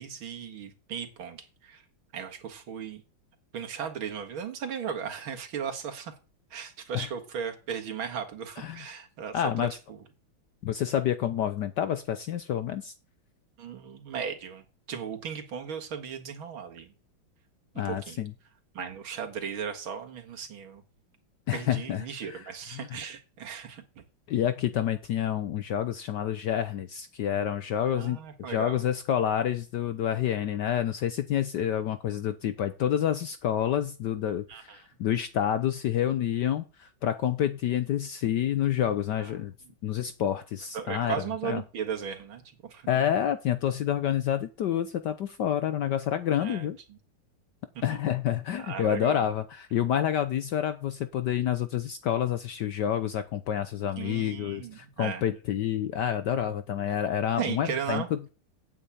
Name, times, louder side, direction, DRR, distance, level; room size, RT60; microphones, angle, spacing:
voice 1, 0.0-1.8 2.1-3.0 3.5-6.1 6.5-9.5 9.9-10.0 13.6-16.9 17.8-18.2 18.7-20.8 21.5-24.0 27.9-28.8 34.5-34.8 39.2-39.3 40.7-42.9 46.4-47.0 47.8-47.9 48.6-49.2 54.0-55.2 57.4-58.1, right 7 dB, 70° right, 4 dB, 2.5 m, -36 dB
voice 2, 9.3-9.8 10.6-12.9 17.8-18.3 21.5-22.9 24.3-39.5 39.8-41.2 41.4-41.6 42.9-46.8 47.8-58.2, left 10 dB, 65° left, 11 dB, 1.1 m, -28 dB
8.6 x 7.4 x 8.5 m, 0.33 s
omnidirectional pair, 2.4 m